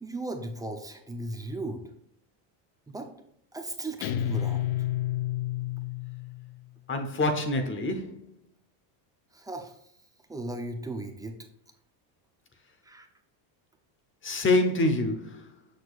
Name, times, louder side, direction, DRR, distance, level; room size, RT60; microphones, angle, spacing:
voice 1, 0.0-1.8 2.9-3.1 3.5-4.7 9.3-9.8 10.3-11.4 12.8-13.1, right 2 dB, 5° right, 0.6 m, -36 dB
Guitar, 4.0-6.6, left 12 dB, 90° left, 0.7 m, -30 dB
voice 2, 6.9-8.1 14.2-15.4, left 2 dB, 25° left, 0.9 m, -26 dB
6.4 x 6.3 x 2.4 m
cardioid pair, 125°, 49 cm